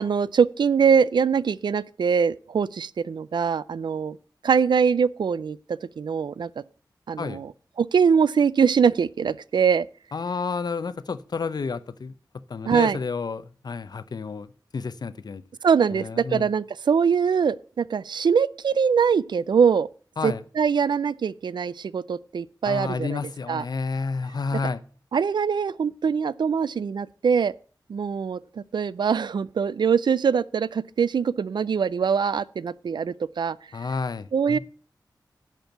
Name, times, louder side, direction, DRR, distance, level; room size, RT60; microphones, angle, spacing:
voice 1, 0.0-4.2 4.4-6.5 7.1-7.5 7.8-9.9 12.7-13.0 15.6-19.9 20.2-23.2 23.5-23.6 24.5-24.6 25.1-27.5 27.9-33.6 34.3-34.6, right 6 dB, 80° right, 0.4 m, -23 dB
voice 2, 10.1-12.1 12.5-14.5 14.7-15.4 15.9-16.5 20.2-20.4 22.6-24.8 33.7-34.6, left 4 dB, 60° left, 0.7 m, -30 dB
10.5 x 4.5 x 7.9 m
wide cardioid pair, 110°, 8 cm